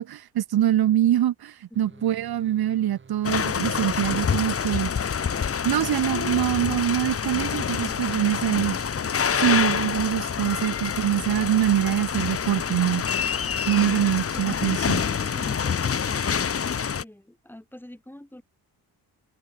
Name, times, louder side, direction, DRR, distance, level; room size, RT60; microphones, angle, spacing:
voice 1, 0.0-4.9 5.6-8.8 9.3-13.0 13.7-15.0, right 12 dB, 70° right, 1.2 m, -24 dB
voice 2, 1.7-2.2 14.1-18.4, left 1 dB, 5° left, 5.3 m, -45 dB
sound 1, 1.7-13.1, right 5 dB, 30° right, 2.2 m, -51 dB
sound 2, 3.2-17.0, left 7 dB, 35° left, 1.2 m, -27 dB
wide cardioid pair, 150°, 39 cm